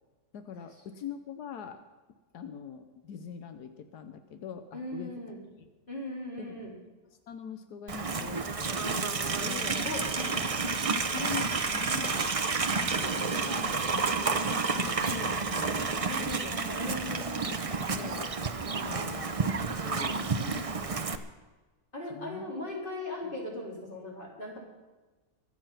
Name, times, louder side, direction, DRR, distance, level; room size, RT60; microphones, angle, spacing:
voice 1, 0.3-1.8 2.3-5.1 5.6-5.7 6.4-6.5 7.3-9.9 11.1-12.3 12.7-14.4 14.7-16.5 17.5-18.3 18.7-20.6 22.0-22.5 23.2-23.3, left 7 dB, 90° left, 8 dB, 1.4 m, -43 dB
voice 2, 4.7-5.4 5.9-6.8 9.8-10.4 13.9-14.1 15.8-17.6 19.0-19.6 21.9-24.6, left 1 dB, 35° left, -3 dB, 4.2 m, -39 dB
Livestock farm animals working animals, 7.9-21.2, right 4 dB, 35° right, 0.5 m, -30 dB
23.5 x 8.0 x 5.8 m, 1.2 s
omnidirectional pair, 1.6 m